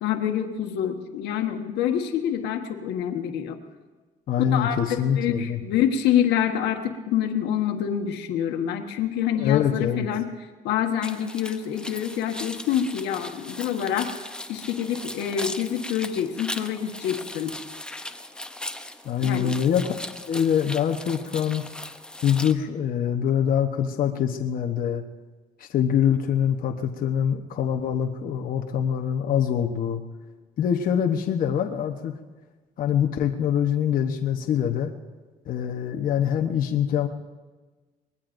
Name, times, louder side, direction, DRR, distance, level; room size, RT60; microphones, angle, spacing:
voice 1, 0.0-3.6 4.5-10.3 10.6-14.1 14.5-17.6 19.2-19.6, left 9 dB, 85° left, 5 dB, 1.4 m, -26 dB
voice 2, 4.3-5.6 9.3-10.1 19.0-19.9 20.3-21.6 22.2-25.0 25.6-30.0 30.6-32.1 32.8-34.9 35.5-37.1, left 8 dB, 55° left, 3 dB, 1.0 m, -24 dB
sound 1, 11.0-22.5, left 1 dB, 5° left, 0.7 m, -38 dB
23.5 x 20.5 x 2.6 m, 1.3 s
cardioid pair, 110°, 17 cm